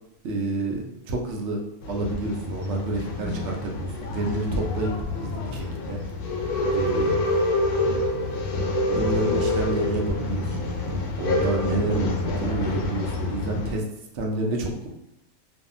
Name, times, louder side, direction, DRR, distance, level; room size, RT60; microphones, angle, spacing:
voice 1, 0.2-1.6 1.9-4.9 5.2-6.0 6.7-7.1 8.9-10.7 11.2-12.1 12.4-13.8 14.2-14.9, right 2 dB, 65° right, 1 dB, 0.7 m, -29 dB
Male speech man speaking / Chatter / Rattle, 1.8-13.7, left 2 dB, 85° left, 1.1 m, -27 dB
2.6 x 2.4 x 2.4 m, 0.86 s
omnidirectional pair, 1.5 m